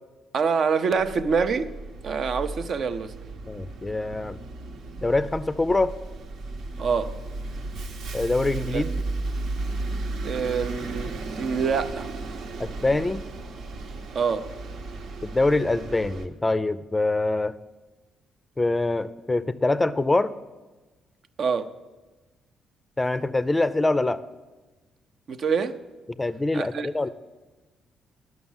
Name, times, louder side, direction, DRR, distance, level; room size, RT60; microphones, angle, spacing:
voice 1, 0.3-1.7 2.0-3.1 6.8-7.1 8.7-8.8 10.2-12.1 14.1-14.5 21.4-21.7 25.3-25.8 26.5-26.9, right 5 dB, 60° right, 0.6 m, -25 dB
Bus, 1.0-16.3, right 3 dB, 75° right, 1.1 m, -35 dB
voice 2, 3.5-4.4 5.0-5.9 8.1-8.9 12.6-13.2 15.2-17.6 18.6-20.3 23.0-24.2 26.2-27.1, left 2 dB, 15° left, 0.4 m, -24 dB
11.0 x 6.3 x 7.2 m
cardioid pair, 90°, 0 cm